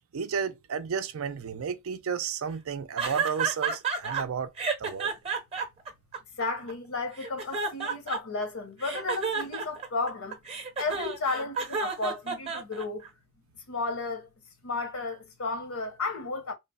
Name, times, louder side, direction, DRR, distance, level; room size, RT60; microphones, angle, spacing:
voice 1, 0.0-4.5 4.8-5.2, right 6 dB, 70° right, 0.4 m, -32 dB
sound 1, 3.0-4.2 4.6-6.7 7.2-8.4 8.8-13.1, right 5 dB, 25° right, 0.6 m, -31 dB
voice 2, 6.4-10.4 10.8-13.0 13.7-14.3 14.6-16.5, left 3 dB, 75° left, 0.8 m, -33 dB
3.1 x 2.0 x 2.3 m
head